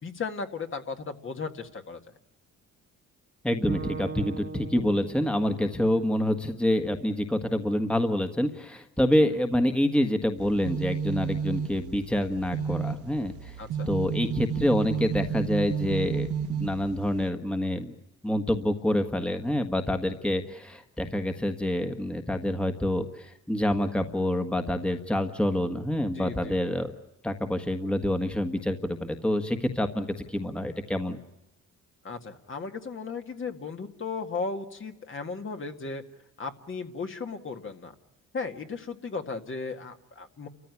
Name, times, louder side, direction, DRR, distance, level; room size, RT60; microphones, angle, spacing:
voice 1, 0.0-2.0 13.6-13.9 26.1-26.6 32.0-36.0 36.4-37.9 38.3-40.5, left 4 dB, 40° left, 5 dB, 2.0 m, -36 dB
voice 2, 3.4-13.6 13.9-17.9 18.2-26.9 27.2-31.2, left 1 dB, 5° left, 6 dB, 1.5 m, -27 dB
Bowed string instrument, 3.7-6.9, right 5 dB, 35° right, 1.5 m, -39 dB
sound 1, 10.4-17.3, right 6 dB, 80° right, 1.9 m, -32 dB
30.0 x 14.5 x 9.7 m, 0.93 s
cardioid pair, 90°, 30 cm